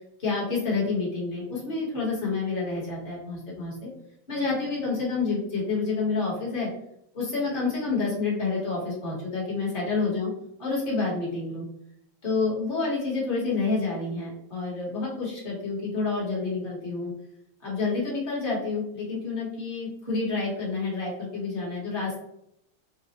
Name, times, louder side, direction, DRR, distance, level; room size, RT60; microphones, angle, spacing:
voice 1, 0.2-3.9 4.3-6.7 7.1-10.3 10.6-11.6 12.2-17.1 17.6-22.2, left 4 dB, 30° left, -5 dB, 1.3 m, -28 dB
4.0 x 2.5 x 2.9 m, 0.77 s
omnidirectional pair, 2.3 m